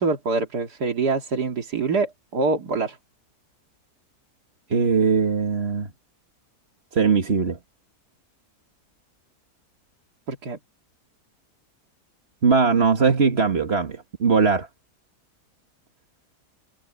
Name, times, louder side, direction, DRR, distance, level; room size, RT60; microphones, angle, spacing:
voice 1, 0.0-3.0 10.3-10.6, right 4 dB, 90° right, 2.8 m, -25 dB
voice 2, 4.7-5.9 6.9-7.6 12.4-14.7, right 5 dB, 40° right, 1.9 m, -20 dB
omnidirectional pair, 1.7 m